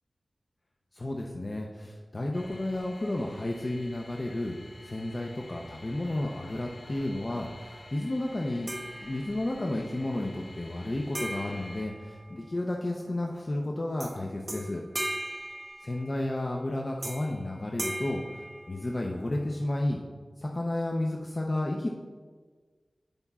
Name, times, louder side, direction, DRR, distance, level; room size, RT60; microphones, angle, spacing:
voice 1, 0.9-4.6 4.8-8.7 9.0-14.8 15.8-18.2 18.7-20.0 20.4-21.9, left 1 dB, 40° left, 0 dB, 0.7 m, -32 dB
sound 1, 2.3-11.8, left 1 dB, 70° left, 2.3 m, -50 dB
sound 2, 8.7-9.7 11.1-12.7 14.0-14.2 14.5-16.3 17.0-17.4 17.8-19.2, right 1 dB, 45° right, 1.0 m, -38 dB
15.5 x 5.2 x 2.4 m, 1.5 s
wide cardioid pair, 65°, 0 cm